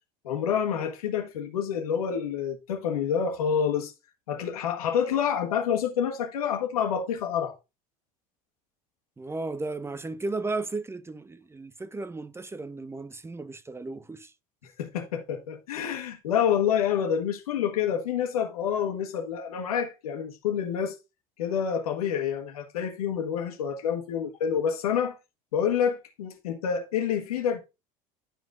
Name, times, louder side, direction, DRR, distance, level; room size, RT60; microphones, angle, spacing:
voice 1, 0.2-3.9 4.3-7.5 14.8-20.9 21.4-25.1 25.5-27.6, left 8 dB, 90° left, 1.4 m, -28 dB
voice 2, 9.2-14.3, right 3 dB, 15° right, 0.6 m, -35 dB
11.5 x 5.2 x 2.5 m
hypercardioid pair, 85°, 18 cm